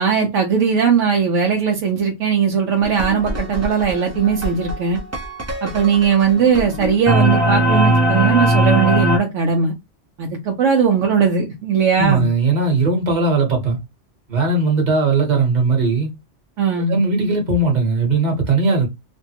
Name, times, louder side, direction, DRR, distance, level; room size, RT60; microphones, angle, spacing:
voice 1, 0.0-5.0 5.6-9.7 10.2-12.3 16.6-17.0, right 6 dB, 90° right, 1.0 m, -18 dB
sound 1, 2.8-9.2, right 1 dB, 20° right, 0.5 m, -20 dB
voice 2, 12.0-13.8 14.3-16.1 16.9-18.9, right 3 dB, 40° right, 1.1 m, -18 dB
3.2 x 2.2 x 2.8 m
omnidirectional pair, 1.2 m